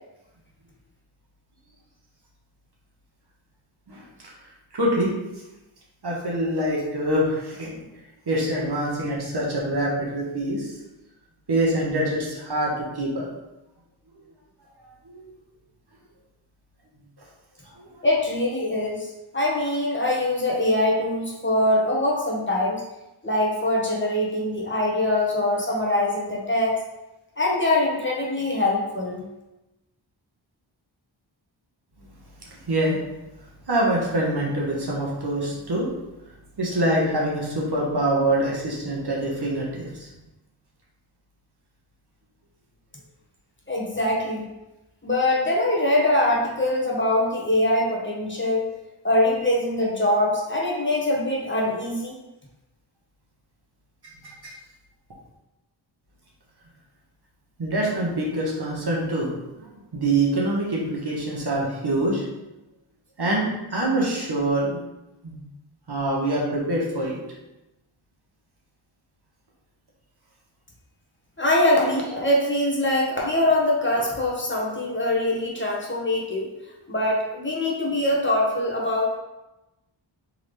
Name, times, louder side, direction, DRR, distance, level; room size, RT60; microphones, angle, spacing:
voice 1, 3.9-4.3 4.7-5.1 6.0-7.7 8.3-10.7 11.5-13.3 15.0-15.3 17.6-18.1 32.0-32.1 32.4-33.0 33.7-35.9 36.6-40.1 54.2-54.5 57.6-62.3 63.2-64.8 65.2-65.4 65.9-67.2, right 1 dB, 55° right, -3 dB, 1.3 m, -25 dB
voice 2, 18.0-22.8 23.2-26.7 27.4-29.2 43.7-44.5 45.0-48.7 49.0-52.2 71.4-76.5 76.9-79.2, left 1 dB, 25° left, -4 dB, 1.2 m, -23 dB
3.8 x 3.2 x 3.3 m, 0.97 s
cardioid pair, 40°, 48 cm